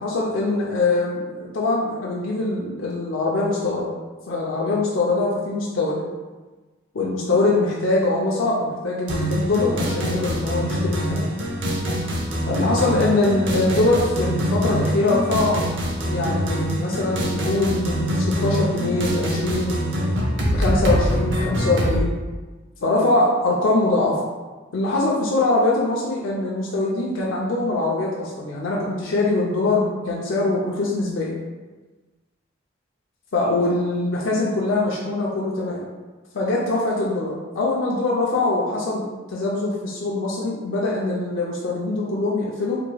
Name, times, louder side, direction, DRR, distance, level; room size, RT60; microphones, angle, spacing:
voice 1, 0.0-3.9 4.3-6.1 6.9-11.3 12.5-15.6 16.1-19.8 20.5-22.2 22.8-24.2 24.7-31.3 33.3-35.9 36.3-42.8, left 2 dB, 85° left, -4 dB, 0.5 m, -23 dB
sound 1, 9.1-22.0, equal, 70° right, 0.7 m, -24 dB
4.5 x 2.9 x 2.2 m, 1.3 s
head